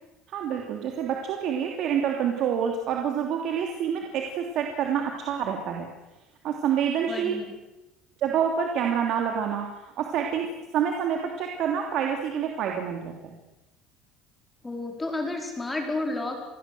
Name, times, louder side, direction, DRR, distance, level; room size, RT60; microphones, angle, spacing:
voice 1, 0.3-5.9 6.4-7.4 8.2-9.7 10.0-10.5 10.7-13.3, right 8 dB, 45° right, 2 dB, 3.1 m, -27 dB
voice 2, 7.1-7.5 14.6-16.4, left 2 dB, 10° left, 2 dB, 4.9 m, -31 dB
28.5 x 20.5 x 7.9 m, 1.0 s
cardioid pair, 170°, 0 cm